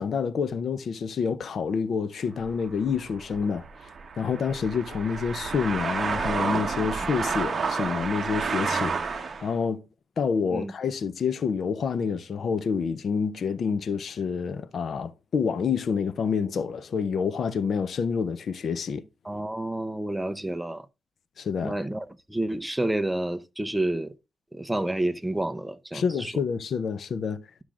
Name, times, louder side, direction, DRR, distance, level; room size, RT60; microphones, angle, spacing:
voice 1, 0.0-3.7 4.2-9.8 10.2-19.0 21.4-21.8 25.9-27.4, left 6 dB, 55° left, 0.5 m, -28 dB
sound 1, 2.4-9.5, right 5 dB, 40° right, 0.9 m, -30 dB
voice 2, 19.2-20.8 21.6-24.1 24.6-26.3, right 1 dB, 5° right, 0.6 m, -29 dB
11.5 x 6.2 x 2.4 m
wide cardioid pair, 140°, 0 cm